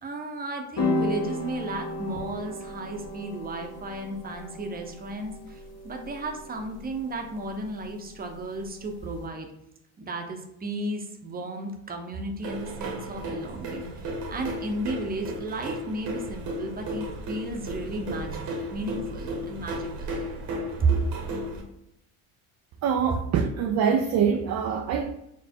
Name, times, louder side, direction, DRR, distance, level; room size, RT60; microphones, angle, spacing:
voice 1, 0.0-9.5 10.0-20.2 20.8-20.9, right 2 dB, 20° right, 3 dB, 0.7 m, -34 dB
sound 1, 0.8-9.2, left 2 dB, 35° left, 1.1 m, -34 dB
sound 2, 12.4-21.6, right 1 dB, 65° right, 1.2 m, -34 dB
voice 2, 22.8-25.1, right 7 dB, 40° right, 5 dB, 0.4 m, -24 dB
4.3 x 2.0 x 4.4 m, 0.82 s
supercardioid pair, 85°, 44 cm